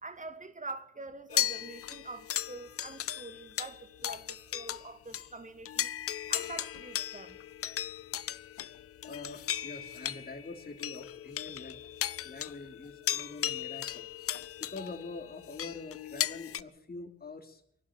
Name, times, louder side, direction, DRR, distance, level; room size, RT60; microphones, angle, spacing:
voice 1, 0.0-5.9 6.3-7.4, right 3 dB, 25° right, 2.5 m, -45 dB
sound 1, 1.3-4.9 5.1-5.3 5.7-16.6, left 11 dB, 50° left, 0.8 m, -36 dB
voice 2, 9.0-12.0 12.2-14.1 14.6-17.6, left 3 dB, 30° left, 3.3 m, -45 dB
24.5 x 11.5 x 9.1 m
hypercardioid pair, 40°, 30 cm